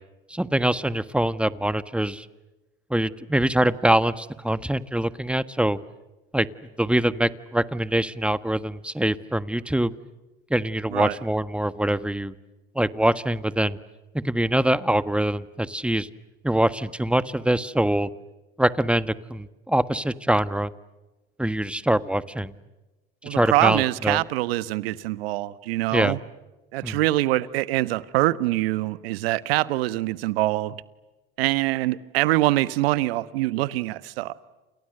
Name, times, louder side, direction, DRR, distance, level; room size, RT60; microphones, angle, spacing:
voice 1, 0.3-2.3 2.9-5.8 6.3-6.5 6.8-9.9 10.5-12.3 12.7-13.8 14.1-16.1 16.4-18.1 18.6-20.7 21.4-22.5 23.2-24.2 25.9-26.2 26.8-27.0, right 1 dB, 5° right, 1.4 m, -24 dB
voice 2, 23.2-26.2 26.7-30.8 31.4-34.4, right 17 dB, 80° right, 1.3 m, -24 dB
29.5 x 29.0 x 6.7 m
hypercardioid pair, 80°, 29 cm